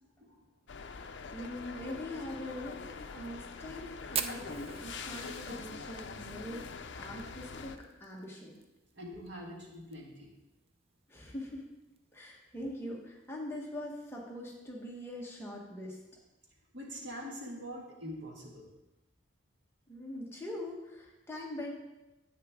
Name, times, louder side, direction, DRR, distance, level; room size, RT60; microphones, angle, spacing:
sound 1, 0.7-7.8, left 5 dB, 65° left, 0.6 m, -44 dB
voice 1, 1.3-2.8 3.1-6.6 7.0-8.6 11.1-11.7 12.1-16.0 19.9-21.7, left 1 dB, 10° left, -3 dB, 1.4 m, -42 dB
Fire, 4.1-8.6 8.9-9.0 9.3-9.4 9.7-10.2 10.7-10.8 11.8-12.0, right 7 dB, 30° right, 0.4 m, -40 dB
voice 2, 8.9-10.3 16.7-18.7, equal, 60° right, -1 dB, 1.9 m, -44 dB
9.9 x 8.6 x 3.7 m, 1.0 s
head